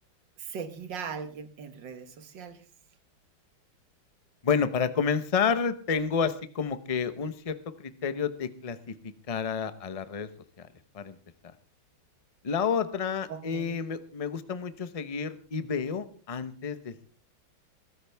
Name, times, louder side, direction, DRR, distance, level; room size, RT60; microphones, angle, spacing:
voice 1, 0.4-2.6 13.3-13.8, right 6 dB, 65° right, 10 dB, 2.0 m, -39 dB
voice 2, 4.4-8.9 9.3-10.3 10.6-10.7 10.9-11.2 12.4-17.1, left 6 dB, 35° left, 11 dB, 0.5 m, -30 dB
22.5 x 13.5 x 3.5 m, 0.42 s
omnidirectional pair, 2.2 m